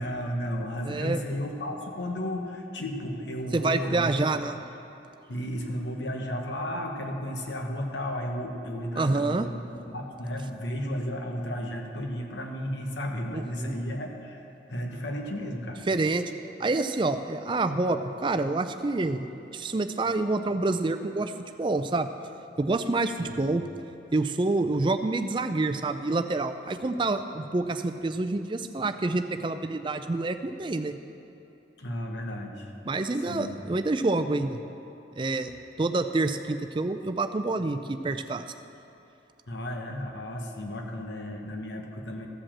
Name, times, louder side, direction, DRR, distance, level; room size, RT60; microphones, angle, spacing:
voice 1, 0.0-4.1 5.3-9.6 9.9-15.9 23.2-23.5 31.8-32.7 33.1-33.5 39.5-42.3, equal, 75° left, 2 dB, 1.2 m, -33 dB
voice 2, 0.9-1.2 3.5-4.5 9.0-9.5 13.3-13.7 15.9-16.2 16.6-19.3 19.5-21.3 21.6-22.1 22.6-23.6 24.1-31.0 32.9-34.6 35.2-35.5 35.8-38.4, right 2 dB, 25° right, 9 dB, 0.4 m, -27 dB
13.5 x 5.0 x 7.4 m, 2.9 s
head